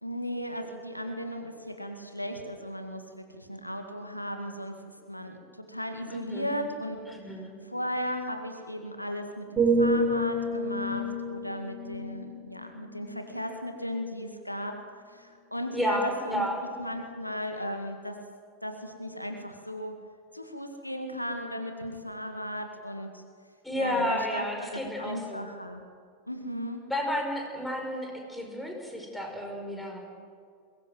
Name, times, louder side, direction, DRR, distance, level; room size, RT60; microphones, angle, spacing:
voice 1, 0.0-4.7 5.1-7.0 7.7-14.7 15.1-16.5 16.8-18.1 18.6-19.9 20.3-23.2 23.8-25.8 26.3-26.8, equal, 90° left, 5 dB, 2.0 m, -36 dB
voice 2, 6.1-6.5 7.1-7.5 15.7-16.6 23.6-25.5 26.9-30.0, equal, 5° left, 1 dB, 5.3 m, -31 dB
sound 1, 9.6-13.5 14.0-14.2, right 1 dB, 20° right, 5.9 m, -29 dB
22.5 x 19.5 x 7.8 m, 2.2 s
figure-of-eight pair, 90°, 0 cm